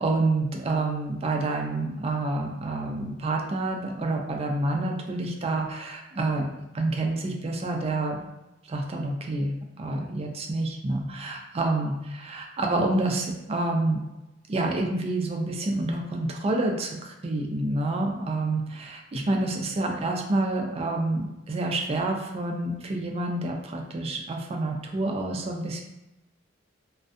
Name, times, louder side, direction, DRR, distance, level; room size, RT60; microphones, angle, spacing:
voice 1, 0.0-6.5 6.7-8.3 8.7-14.0 14.5-25.8, right 2 dB, 30° right, 2 dB, 0.3 m, -28 dB
2.4 x 2.2 x 2.4 m, 0.94 s
head